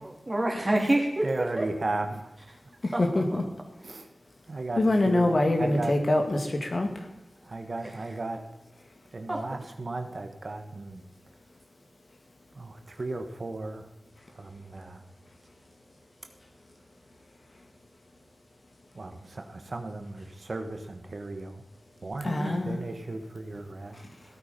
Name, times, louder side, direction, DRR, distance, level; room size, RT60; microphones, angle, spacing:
voice 1, 0.0-1.3 1.6-1.7 2.9-3.0 3.3-3.4 9.3-9.4 22.3-22.6, right 1 dB, 30° right, 0 dB, 3.5 m, -27 dB
voice 2, 1.2-2.3 3.8-4.1 4.5-5.3 5.6-6.0 7.4-8.4 9.1-11.0 12.5-13.9 14.3-15.0 18.9-21.6 22.0-24.4, right 2 dB, 60° right, 6 dB, 1.4 m, -35 dB
voice 3, 2.8-3.4 4.8-7.1 22.2-22.8, left 2 dB, 55° left, 4 dB, 2.3 m, -25 dB
16.5 x 8.8 x 5.3 m, 0.97 s
wide cardioid pair, 55°, 0 cm